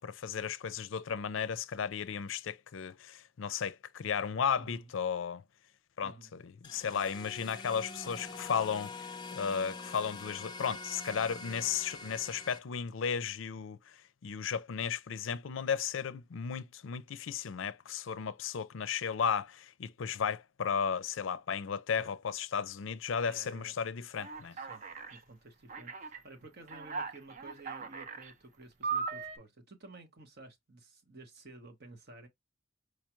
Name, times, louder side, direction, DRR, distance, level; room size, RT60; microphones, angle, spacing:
voice 1, 0.0-5.4 6.0-24.6, left 7 dB, 70° left, 0.5 m, -34 dB
voice 2, 4.6-4.9 6.0-6.3 22.0-22.1 23.3-23.8 24.5-24.8 25.1-32.3, right 2 dB, 55° right, 1.2 m, -53 dB
sound 1, 6.6-12.6, left 3 dB, 20° left, 0.6 m, -45 dB
Alarm, 24.2-25.2 25.7-26.2 26.7-28.3 28.8-29.4, right 5 dB, 40° right, 0.6 m, -38 dB
4.8 x 2.3 x 3.0 m
head